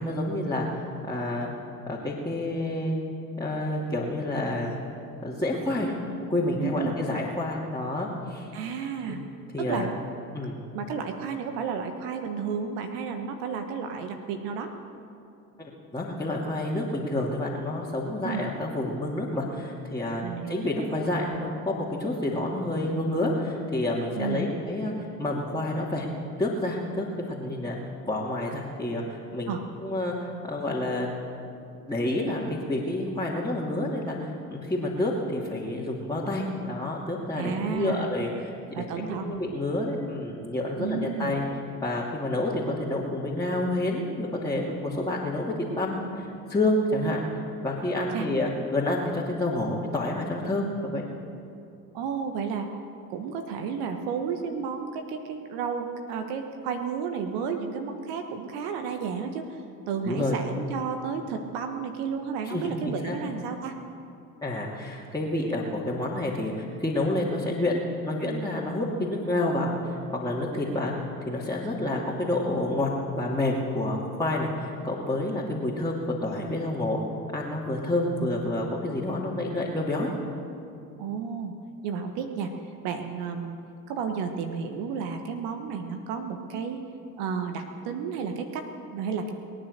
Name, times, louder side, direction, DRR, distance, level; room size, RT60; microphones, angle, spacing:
voice 1, 0.0-1.5 1.9-3.0 3.4-4.8 5.2-5.9 6.3-8.5 9.1-9.2 9.5-9.9 10.3-10.6 15.6-24.9 25.2-26.1 26.4-27.8 28.1-29.5 29.8-31.1 31.9-38.5 38.8-41.4 41.8-47.2 47.6-51.1 60.0-60.4 62.4-63.2 64.4-77.0 77.3-80.1, left 1 dB, 10° left, -6 dB, 2.8 m, -29 dB
voice 2, 6.6-6.9 8.5-9.2 9.6-9.9 10.7-14.7 18.2-18.4 20.2-20.7 24.1-24.5 29.5-29.6 37.4-38.1 38.7-39.4 40.8-41.3 48.1-48.3 51.9-52.7 53.1-63.8 81.0-81.5 81.8-83.6 83.9-86.8 87.2-89.3, right 6 dB, 60° right, 5 dB, 1.5 m, -32 dB
21.5 x 10.0 x 6.6 m, 2.6 s
hypercardioid pair, 65°, 45 cm